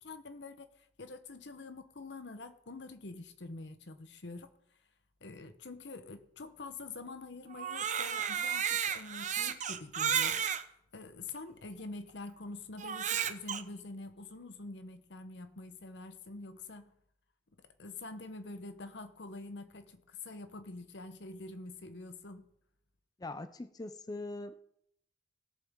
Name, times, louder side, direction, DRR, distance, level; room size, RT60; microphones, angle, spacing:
voice 1, 0.0-4.5 5.2-10.5 10.9-16.9 17.8-22.5, left 3 dB, 75° left, 10 dB, 0.9 m, -46 dB
Crying sobbing, 7.5-10.6 11.4-11.5 12.8-13.6, right 8 dB, 45° right, 0.7 m, -32 dB
voice 2, 23.2-24.6, left 2 dB, 20° left, 11 dB, 0.4 m, -42 dB
17.0 x 7.1 x 3.6 m, 0.71 s
head